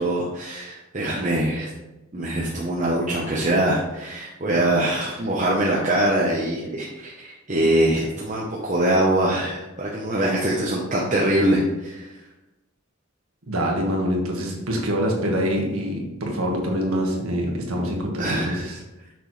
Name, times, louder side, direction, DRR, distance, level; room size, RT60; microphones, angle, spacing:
voice 1, 0.0-1.7 2.1-12.1 18.2-18.6, right 1 dB, 35° right, -4 dB, 0.8 m, -23 dB
voice 2, 13.5-18.8, equal, 85° right, 0 dB, 1.6 m, -25 dB
6.8 x 6.1 x 3.2 m, 1.0 s
head